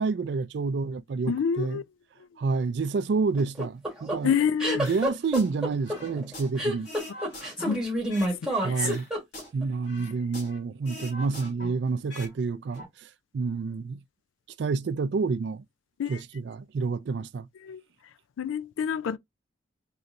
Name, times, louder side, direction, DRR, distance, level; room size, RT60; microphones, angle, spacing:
voice 1, 0.0-1.8 2.4-4.3 4.8-6.9 8.6-9.1 9.5-12.8 13.3-14.0 14.6-15.6 16.1-17.5, right 4 dB, 60° right, 0.3 m, -28 dB
voice 2, 1.3-1.8 4.2-4.8 7.6-7.8 8.4-8.9 16.0-16.2 17.6-17.8 18.4-19.2, left 7 dB, 80° left, 0.3 m, -28 dB
sound 1, 3.4-9.6, right 1 dB, 5° right, 1.3 m, -28 dB
sound 2, 4.8-5.5 5.8-8.4 8.7-10.6 10.8-12.3 12.6-12.8, left 1 dB, 65° left, 2.1 m, -43 dB
4.0 x 3.1 x 2.5 m
head